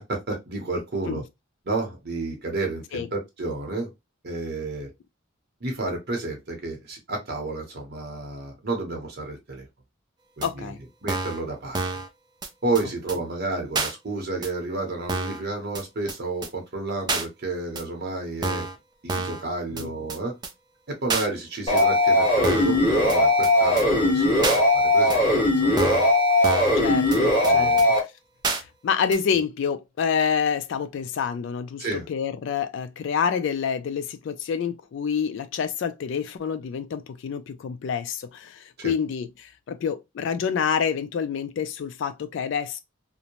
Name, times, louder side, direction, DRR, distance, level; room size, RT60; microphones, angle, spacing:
voice 1, 0.1-1.2 1.6-3.9 4.2-4.9 5.6-9.7 10.4-10.7 11.0-11.8 12.6-18.7 19.0-20.4 20.9-24.5 24.7-25.3 25.6-26.0 27.4-27.9 31.8-32.1 38.8-38.9, right 2 dB, 50° right, 0.8 m, -31 dB
voice 2, 10.4-10.8 19.7-19.9 26.8-27.7 28.5-42.8, left 6 dB, 60° left, 0.3 m, -28 dB
sound 1, 10.4-10.5 11.1-11.4 11.7-12.1 12.4-12.5 12.7-12.8 13.1-13.2 13.7-13.9 14.4-14.5 15.1-15.4 15.7-15.8 16.1-16.2 16.4-16.5 17.1-17.3 17.8-17.9 18.4-18.8 19.1-19.4 19.8-19.9 20.1-20.2 20.4-20.5 21.1-21.3 21.8-21.9 22.4-22.8 23.1-23.2 23.4-23.5 23.8-23.9 24.4-24.6 25.1-25.2 25.8-26.1 26.4-26.8 27.1-27.2 27.4-27.5 27.8-27.9 28.4-28.6 29.1-29.2, right 3 dB, 20° right, 0.3 m, -28 dB
sound 2, 21.7-28.0, left 1 dB, 25° left, 1.3 m, -19 dB
2.6 x 2.0 x 2.8 m
head